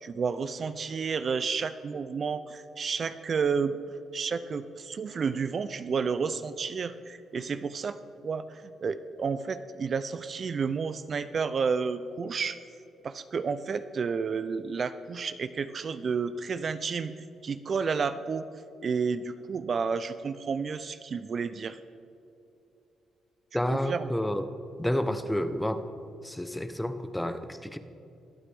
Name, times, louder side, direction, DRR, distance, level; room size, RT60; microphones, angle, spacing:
voice 1, 0.0-3.8 4.1-8.0 8.2-12.6 13.0-17.2 17.4-18.4 18.8-21.8 23.7-24.1, right 5 dB, 50° right, 12 dB, 0.4 m, -31 dB
voice 2, 23.5-24.5 24.8-25.9 26.2-27.8, left 1 dB, 5° left, 10 dB, 0.8 m, -30 dB
22.5 x 8.7 x 3.5 m, 2.7 s
supercardioid pair, 65°, 0 cm